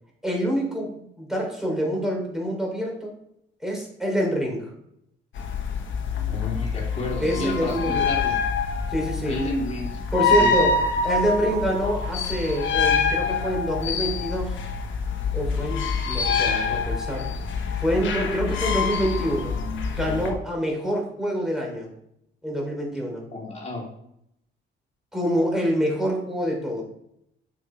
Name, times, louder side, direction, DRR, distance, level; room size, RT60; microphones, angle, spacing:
voice 1, 0.2-3.1 3.6-4.7 7.2-8.1 8.9-9.4 10.1-14.6 15.3-17.3 17.8-19.5 20.0-21.9 22.4-23.2 25.1-26.8, equal, ahead, -1 dB, 3.2 m, -26 dB
sound 1, 5.4-20.3, left 4 dB, 70° left, 1.3 m, -26 dB
voice 2, 6.3-8.4 9.3-9.9 10.4-10.5 23.3-23.8, left 2 dB, 35° left, -1 dB, 2.6 m, -30 dB
6.7 x 5.5 x 4.4 m, 0.75 s
cardioid pair, 90°, 20 cm